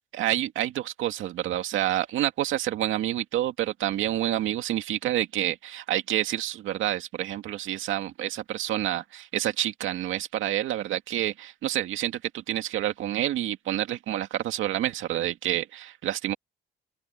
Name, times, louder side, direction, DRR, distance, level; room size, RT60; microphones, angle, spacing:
voice 1, 0.1-16.3, right 13 dB, 85° right, 2.2 m, -28 dB
open air
cardioid pair, 90°, 20 cm